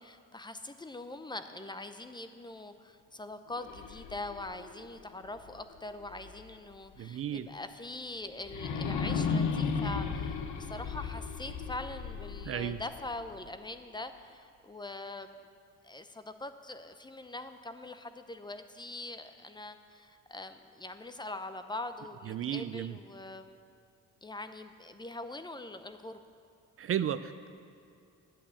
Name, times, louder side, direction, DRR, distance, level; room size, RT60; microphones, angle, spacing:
voice 1, 0.0-15.3 15.8-23.6 24.2-26.2, left 2 dB, 15° left, 9 dB, 0.6 m, -43 dB
sound 1, 3.5-6.5 6.9-7.0 8.4-13.5, left 5 dB, 75° left, 1.0 m, -35 dB
voice 2, 7.0-7.5 12.4-12.8 22.3-23.0 26.8-27.5, right 10 dB, 50° right, 12 dB, 0.4 m, -34 dB
10.5 x 8.5 x 7.1 m, 2.5 s
cardioid pair, 90°, 30 cm